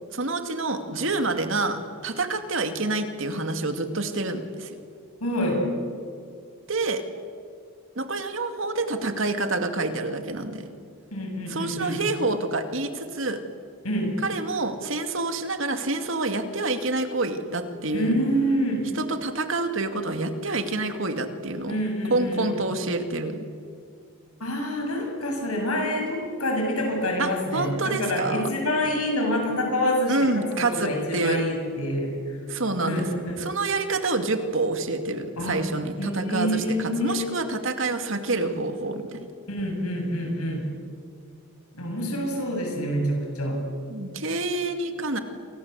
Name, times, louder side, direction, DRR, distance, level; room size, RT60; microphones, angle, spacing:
voice 1, 0.1-4.8 6.7-7.0 8.0-10.7 11.5-13.4 14.2-18.1 18.9-21.8 22.1-23.5 27.2-28.5 30.1-31.4 32.5-33.1 33.4-39.3 43.9-45.2, right 2 dB, 60° right, 7 dB, 2.4 m, -27 dB
voice 2, 5.2-5.6 11.1-12.0 13.8-14.1 17.9-18.9 21.7-22.6 24.4-32.1 32.8-33.4 35.4-35.6 36.0-37.3 39.5-40.7 41.7-43.6, equal, 85° left, 2 dB, 7.6 m, -27 dB
29.0 x 25.0 x 8.3 m, 2.3 s
head